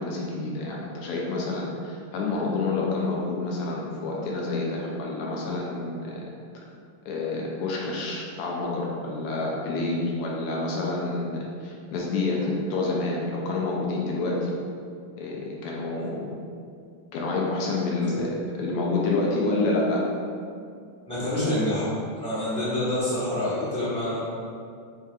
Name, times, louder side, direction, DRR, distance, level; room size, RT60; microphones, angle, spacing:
voice 1, 0.0-6.2 7.0-14.6 15.2-16.3 17.1-18.2 18.6-20.0, left 3 dB, 85° left, -3 dB, 1.5 m, -28 dB
voice 2, 21.1-24.2, left 1 dB, 5° left, -14 dB, 0.7 m, -27 dB
5.7 x 2.8 x 2.3 m, 2.3 s
omnidirectional pair, 2.4 m